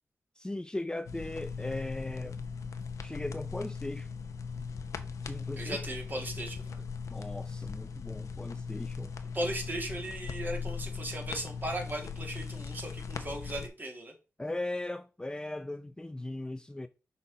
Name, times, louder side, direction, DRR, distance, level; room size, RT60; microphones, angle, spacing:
voice 1, 0.4-2.4 3.0-4.1 5.2-5.8 7.1-9.1 14.4-16.9, left 2 dB, 15° left, 0.5 m, -38 dB
sound 1, 1.0-13.7, left 5 dB, 75° left, 0.8 m, -39 dB
voice 2, 5.5-6.8 9.3-14.1, right 1 dB, 35° right, 2.3 m, -37 dB
5.9 x 4.1 x 4.0 m
cardioid pair, 50°, 5 cm